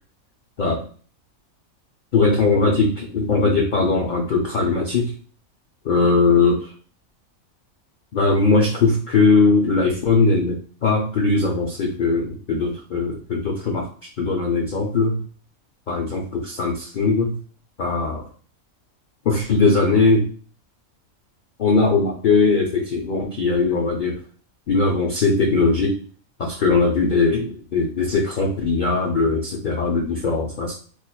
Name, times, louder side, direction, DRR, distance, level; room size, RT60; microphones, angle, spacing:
voice 1, 2.1-5.1 5.8-6.7 8.1-13.9 14.2-15.2 15.9-17.4 17.8-18.2 19.3-20.3 21.6-24.2 24.7-26.0 26.4-30.7, left 3 dB, 65° left, -1 dB, 0.4 m, -20 dB
4.4 x 2.5 x 2.2 m, 0.44 s
omnidirectional pair, 1.5 m